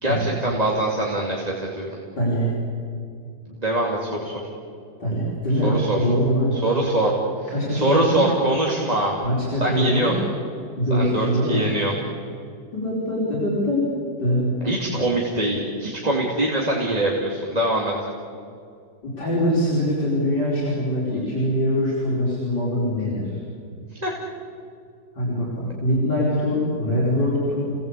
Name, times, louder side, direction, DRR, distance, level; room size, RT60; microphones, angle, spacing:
voice 1, 0.0-1.9 3.6-4.3 5.6-6.0 6.6-7.1 7.4-9.1 9.6-10.2 10.9-11.9 14.6-17.9 24.0-24.1, right 1 dB, 20° right, -3 dB, 2.8 m, -23 dB
voice 2, 2.2-2.5 5.0-6.6 7.5-8.2 9.2-10.1 10.7-11.7 12.7-13.8 14.2-14.6 19.0-23.4 25.1-27.6, equal, 80° left, -7 dB, 6.0 m, -23 dB
30.0 x 19.0 x 8.4 m, 2.4 s
omnidirectional pair, 1.9 m